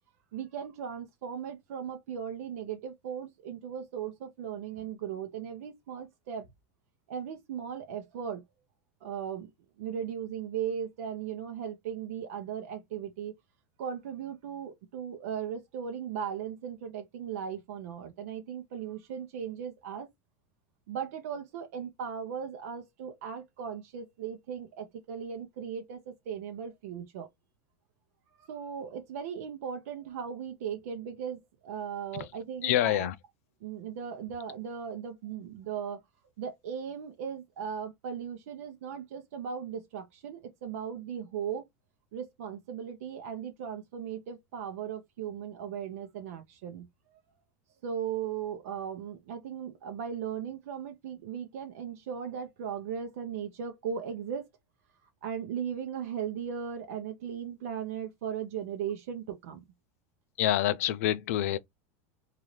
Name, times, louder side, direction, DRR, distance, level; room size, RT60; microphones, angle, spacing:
voice 1, 0.3-6.5 7.1-8.4 9.0-9.5 9.8-13.3 13.8-20.1 20.9-27.3 28.5-33.1 33.6-36.0 36.4-41.7 42.1-46.9 47.8-54.5 55.2-59.6, right 8 dB, 80° right, 0.8 m, -37 dB
voice 2, 32.6-33.1 60.4-61.6, left 12 dB, 75° left, 0.5 m, -27 dB
3.9 x 2.6 x 3.1 m
supercardioid pair, 145°, 8 cm